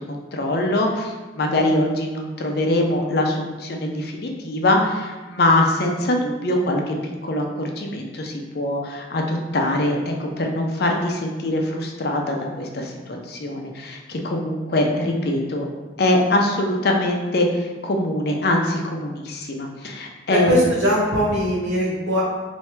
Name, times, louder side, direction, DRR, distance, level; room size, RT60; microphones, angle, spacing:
voice 1, 0.1-15.7 16.0-20.6, left 1 dB, 55° left, 1 dB, 0.5 m, -23 dB
voice 2, 20.3-22.2, equal, 75° right, -9 dB, 1.2 m, -21 dB
3.3 x 2.7 x 4.4 m, 1.2 s
head